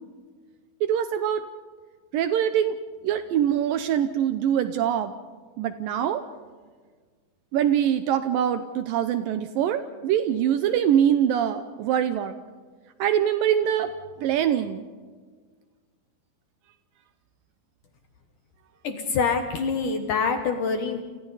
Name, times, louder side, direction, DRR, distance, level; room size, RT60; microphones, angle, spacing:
voice 1, 0.8-1.4 2.1-2.7 3.0-5.1 5.6-6.2 7.5-12.4 13.0-13.9 14.2-14.8, right 9 dB, 90° right, 10 dB, 1.9 m, -23 dB
voice 2, 18.8-21.0, left 5 dB, 65° left, 5 dB, 2.2 m, -25 dB
29.5 x 28.5 x 4.1 m, 1.5 s
omnidirectional pair, 5.1 m